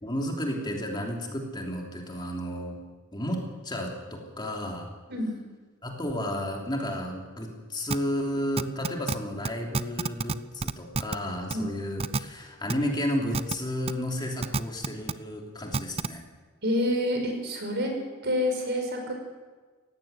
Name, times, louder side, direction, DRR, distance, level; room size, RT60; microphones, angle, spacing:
voice 1, 0.0-2.8 3.1-4.9 5.8-16.2, equal, 25° left, 0 dB, 3.1 m, -32 dB
sound 1, 7.9-8.0 8.6-9.2 9.4-9.5 9.7-10.3 10.6-11.2 11.5-11.6 12.0-12.2 12.7-12.8 13.3-13.5 13.9-14.0 14.4-15.1 15.7-16.1, right 4 dB, 30° right, 0.5 m, -27 dB
voice 2, 16.6-17.9 18.2-19.1, left 1 dB, 60° right, 3 dB, 5.5 m, -27 dB
17.5 x 15.5 x 9.4 m, 1.4 s
head